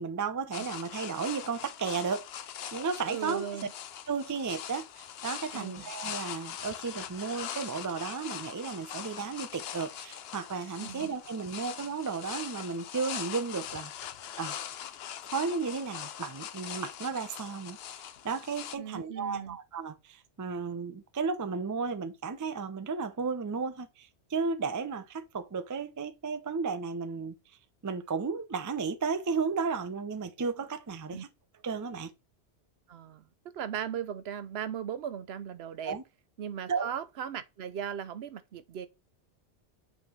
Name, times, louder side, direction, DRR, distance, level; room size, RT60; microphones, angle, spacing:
voice 1, 0.0-3.4 4.1-13.9 14.4-14.6 15.3-17.8 18.2-27.3 27.8-31.3 31.6-32.1 35.8-36.0 36.7-36.9, right 5 dB, 30° right, 0.3 m, -34 dB
sound 1, 0.5-18.8, left 10 dB, 70° left, 0.8 m, -42 dB
voice 2, 3.1-3.7 5.5-5.9 10.8-11.1 18.8-19.6 31.1-31.2 32.9-33.3 33.5-36.0 36.4-38.9, right 8 dB, 70° right, 0.8 m, -37 dB
8.0 x 3.7 x 3.2 m
omnidirectional pair, 1.1 m